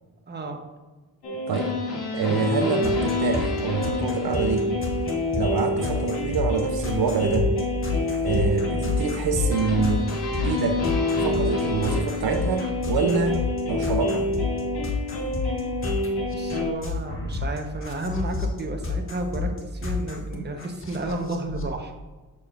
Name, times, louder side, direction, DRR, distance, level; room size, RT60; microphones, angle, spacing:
voice 1, 0.3-0.6 16.3-21.9, right 2 dB, 25° right, 3 dB, 1.0 m, -32 dB
sound 1, 1.2-16.7, left 2 dB, 85° left, 2.0 m, -27 dB
voice 2, 2.1-4.7 5.4-7.5 8.2-10.1 10.4-10.8 11.2-14.3, right 5 dB, 75° right, 6 dB, 0.8 m, -26 dB
sound 2, 2.8-21.7, left 3 dB, 35° left, 1.3 m, -29 dB
7.0 x 6.4 x 2.5 m, 1.3 s
cardioid pair, 95°, 37 cm